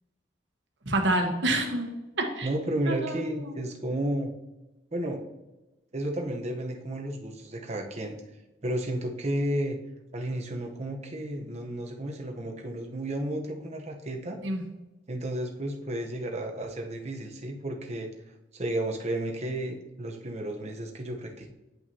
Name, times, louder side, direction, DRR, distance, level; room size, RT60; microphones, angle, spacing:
voice 1, 0.9-1.9 2.2-2.5 2.9-3.6 14.4-14.6, right 1 dB, 80° right, 4 dB, 1.2 m, -28 dB
voice 2, 2.4-4.3 4.9-5.2 5.9-8.2 8.6-9.8 10.1-14.4 15.1-18.1 18.5-21.5, right 1 dB, 40° right, 2 dB, 0.9 m, -32 dB
9.1 x 5.6 x 2.8 m, 1.0 s
head